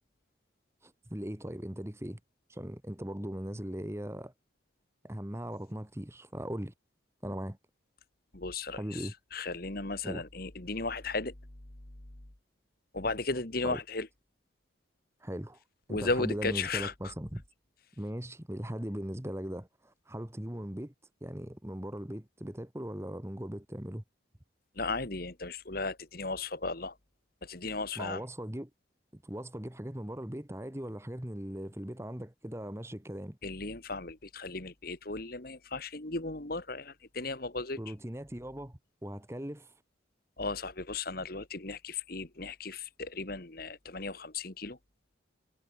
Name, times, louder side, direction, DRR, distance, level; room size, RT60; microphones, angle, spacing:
voice 1, 0.8-2.2 2.5-4.3 5.0-6.7 7.2-7.6 8.7-9.1 10.0-10.2 13.6-13.8 15.2-15.6 15.9-17.4 18.0-20.9 21.2-24.0 28.0-28.7 29.1-33.4 37.8-39.7, equal, 15° right, 1.3 m, -39 dB
voice 2, 8.3-11.3 12.9-14.1 15.9-17.1 24.8-27.0 27.4-28.2 33.4-37.8 40.4-44.8, left 3 dB, 50° left, 1.9 m, -35 dB
head